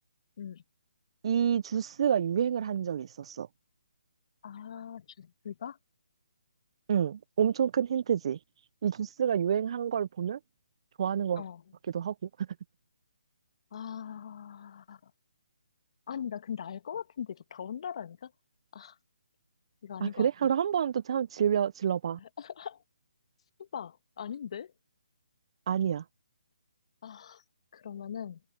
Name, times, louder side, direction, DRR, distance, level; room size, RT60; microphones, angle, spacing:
voice 1, 1.2-3.5 6.9-8.4 8.8-10.4 11.0-11.4 11.9-12.5 20.0-22.2 25.7-26.0, right 8 dB, 45° right, 0.5 m, -28 dB
voice 2, 4.4-5.8 11.4-11.6 13.7-15.1 16.1-18.3 18.7-19.0 19.8-20.3 22.2-22.8 23.6-24.7 27.0-27.4 27.7-28.4, left 8 dB, 50° left, 1.6 m, -40 dB
open air
figure-of-eight pair, 150°, 4 cm